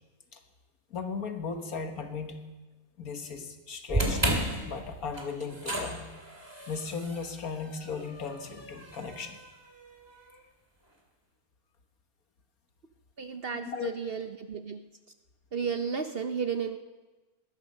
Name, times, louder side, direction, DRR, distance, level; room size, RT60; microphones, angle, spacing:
voice 1, 0.9-2.4 3.0-6.1 6.7-9.4 13.6-13.9, left 5 dB, 75° left, 5 dB, 1.9 m, -36 dB
sound 1, 3.9-10.2, right 1 dB, 15° right, 2.4 m, -34 dB
voice 2, 13.2-14.8 15.5-16.8, right 6 dB, 50° right, 8 dB, 0.8 m, -33 dB
20.0 x 11.0 x 6.5 m, 1.2 s
omnidirectional pair, 1.6 m